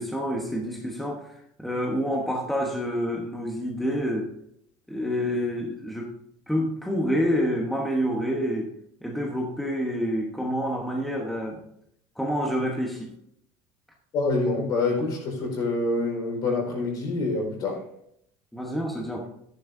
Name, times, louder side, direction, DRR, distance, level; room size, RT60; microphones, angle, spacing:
voice 1, 0.0-4.3 4.9-6.1 6.5-8.7 9.0-11.6 12.2-13.1 18.5-19.3, equal, ahead, -1 dB, 1.1 m, -28 dB
voice 2, 14.1-17.9, left 3 dB, 45° left, 0 dB, 4.5 m, -26 dB
13.5 x 10.5 x 2.7 m, 0.71 s
cardioid pair, 150°, 9 cm